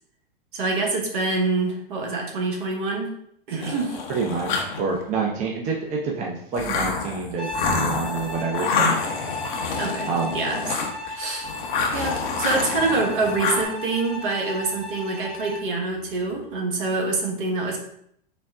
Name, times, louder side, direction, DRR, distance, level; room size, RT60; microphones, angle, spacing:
voice 1, 0.5-3.1 3.5-4.0 9.8-10.6 11.1-11.5 11.9-17.8, right 3 dB, 60° right, 1 dB, 1.2 m, -26 dB
sound 1, 3.6-5.0 6.6-11.1 11.4-13.6, left 5 dB, 55° left, 0.8 m, -27 dB
voice 2, 4.1-9.0 10.1-10.3 10.7-10.8, right 4 dB, 25° right, -1 dB, 0.6 m, -27 dB
Bowed string instrument, 7.4-15.7, left 2 dB, 5° left, 0.8 m, -35 dB
4.1 x 2.2 x 3.5 m, 0.69 s
hypercardioid pair, 110°, 30 cm